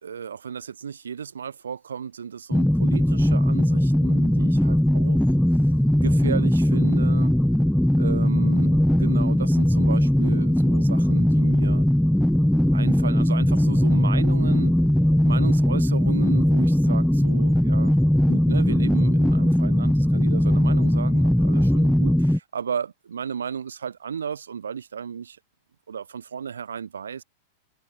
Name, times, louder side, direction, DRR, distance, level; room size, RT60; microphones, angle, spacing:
voice 1, 0.0-5.2 6.0-7.3 8.0-11.9 12.7-14.8 15.2-18.0 18.3-25.4 25.9-27.2, right 7 dB, 75° right, 1.2 m, -34 dB
sound 1, 2.5-22.4, equal, ahead, 0.3 m, -19 dB
figure-of-eight pair, 95°, 0 cm